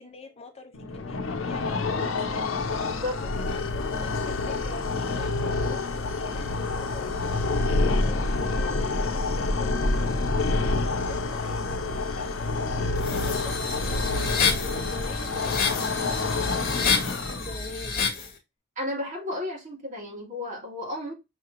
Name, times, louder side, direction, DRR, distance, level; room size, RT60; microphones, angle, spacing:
voice 1, 0.0-7.1 7.5-9.8 10.5-18.1, left 2 dB, 30° left, 0.8 m, -44 dB
sound 1, 0.7-17.7, left 3 dB, 90° left, 0.7 m, -28 dB
sound 2, 13.0-18.3, left 5 dB, 50° left, 1.5 m, -29 dB
voice 2, 18.8-21.1, left 1 dB, 40° right, 2.1 m, -33 dB
5.8 x 2.9 x 2.6 m
head